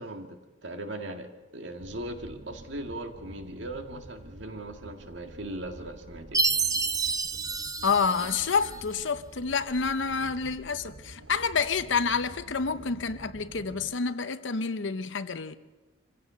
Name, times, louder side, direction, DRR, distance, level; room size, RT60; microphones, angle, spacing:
voice 1, 0.0-6.5, right 1 dB, 70° right, 2.0 m, -39 dB
sound 1, 1.8-14.0, right 1 dB, 90° right, 1.2 m, -48 dB
Chime, 6.3-8.8, right 4 dB, 20° right, 0.7 m, -29 dB
voice 2, 7.8-15.5, left 5 dB, 80° left, 0.8 m, -28 dB
25.5 x 16.0 x 6.3 m
head